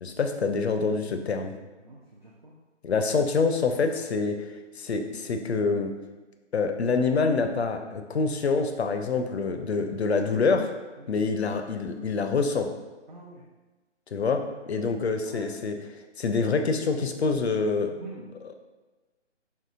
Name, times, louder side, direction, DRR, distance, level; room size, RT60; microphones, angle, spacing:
voice 1, 0.0-1.5 2.8-4.5 4.8-5.9 6.5-10.7 11.1-12.7 14.1-15.8 16.2-17.9 18.4-18.5, left 4 dB, 60° left, 6 dB, 0.5 m, -26 dB
voice 2, 1.8-2.5 12.4-12.5 13.1-13.4 15.3-15.7 17.9-18.3, right 2 dB, 45° right, -3 dB, 0.4 m, -45 dB
4.5 x 3.0 x 2.5 m, 1.2 s
figure-of-eight pair, 155°, 36 cm